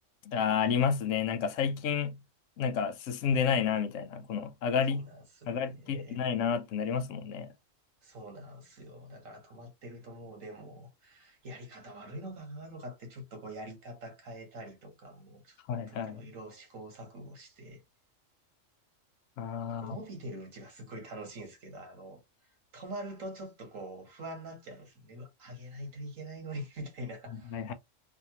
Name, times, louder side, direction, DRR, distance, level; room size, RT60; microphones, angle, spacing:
voice 1, 0.3-2.2 2.6-5.1 5.5-7.5 15.7-16.3 19.4-20.0 27.5-27.7, left 7 dB, 75° left, 0.9 m, -30 dB
voice 2, 4.9-6.2 8.0-15.6 15.9-17.8 19.6-22.2 22.7-27.6, right 1 dB, 85° right, 1.7 m, -44 dB
3.5 x 2.6 x 2.9 m
omnidirectional pair, 1.3 m